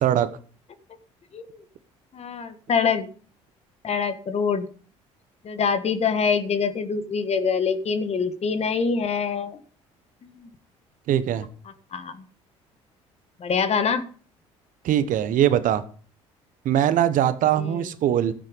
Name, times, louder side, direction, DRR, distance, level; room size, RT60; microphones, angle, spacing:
voice 1, 2.1-3.1 3.8-4.7 5.4-9.6 10.4-10.5 11.9-12.2 13.4-14.0 17.6-17.8, left 6 dB, 45° left, 10 dB, 1.7 m, -25 dB
voice 2, 11.1-11.5 14.8-15.8 16.6-18.3, right 11 dB, 60° right, 13 dB, 1.2 m, -21 dB
13.0 x 8.9 x 5.3 m, 0.43 s
hypercardioid pair, 65°, 15 cm